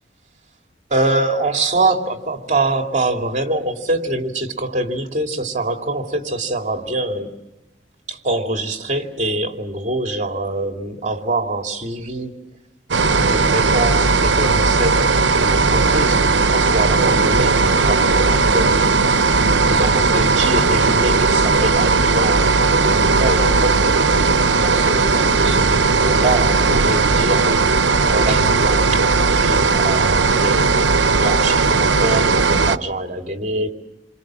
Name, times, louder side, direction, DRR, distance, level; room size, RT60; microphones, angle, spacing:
voice 1, 0.9-7.3 8.1-12.4 13.2-19.1 19.6-24.2 24.5-30.7 31.2-33.7, right 2 dB, 40° right, 4 dB, 2.6 m, -24 dB
sound 1, 12.9-32.8, right 4 dB, 85° right, 0.8 m, -16 dB
29.0 x 24.5 x 7.6 m, 0.98 s
head